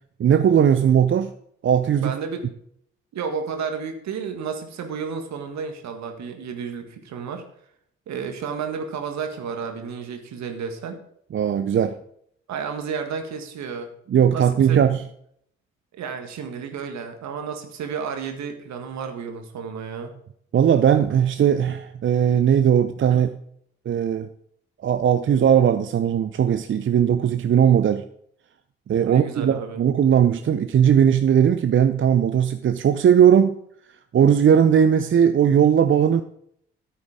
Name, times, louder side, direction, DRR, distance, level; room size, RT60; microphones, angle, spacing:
voice 1, 0.2-1.3 1.6-2.1 11.3-11.9 14.1-15.0 20.5-23.3 23.9-24.3 24.8-28.1 28.9-33.6 34.1-36.2, right 8 dB, 40° right, 10 dB, 0.7 m, -18 dB
voice 2, 2.0-2.5 3.1-7.4 8.1-11.0 12.5-13.9 14.3-15.0 16.0-20.1 23.1-23.2 29.1-29.8, right 6 dB, 60° right, 6 dB, 1.8 m, -32 dB
13.5 x 8.4 x 3.7 m, 0.68 s
figure-of-eight pair, 40°, 32 cm